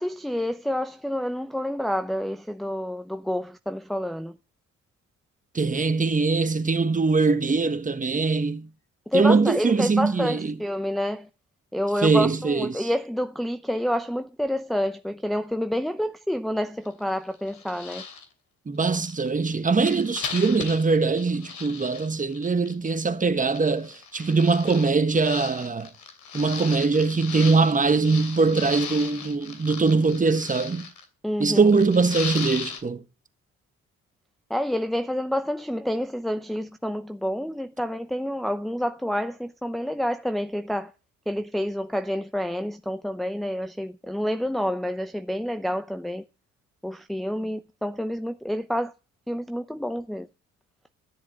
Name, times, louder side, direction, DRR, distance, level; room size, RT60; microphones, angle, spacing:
voice 1, 0.0-4.4 9.1-11.3 11.7-18.0 31.2-31.6 34.5-40.9 41.3-46.2 46.8-48.9 49.3-50.3, equal, ahead, 0.7 m, -28 dB
voice 2, 5.5-8.7 9.1-10.6 12.0-12.9 18.7-25.9 26.3-30.9 31.4-33.0, right 4 dB, 25° right, 1.4 m, -22 dB
sound 1, 16.9-17.0 17.3-18.2 18.8-23.0 23.5-31.0 31.7-32.8, left 6 dB, 75° left, 2.9 m, -37 dB
12.5 x 7.2 x 7.9 m
cardioid pair, 90°, 30 cm